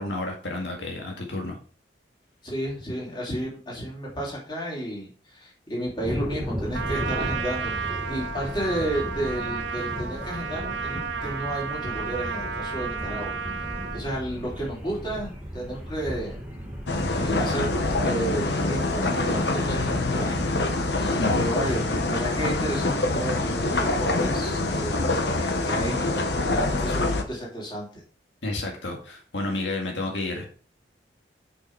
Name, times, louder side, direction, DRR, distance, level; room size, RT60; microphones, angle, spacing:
voice 1, 0.0-1.6 21.2-21.4 28.4-30.5, left 2 dB, 90° left, 1 dB, 2.0 m, -30 dB
voice 2, 2.4-13.7 13.9-16.4 17.1-17.7 18.0-20.6 21.0-28.0, right 1 dB, 25° left, -4 dB, 3.1 m, -32 dB
sound 1, 6.0-20.8, equal, 10° right, 1.7 m, -36 dB
Trumpet, 6.7-14.0, right 6 dB, 90° right, 1.0 m, -32 dB
sound 2, 16.9-27.2, left 2 dB, 70° left, 1.1 m, -25 dB
6.5 x 5.8 x 4.6 m, 0.40 s
head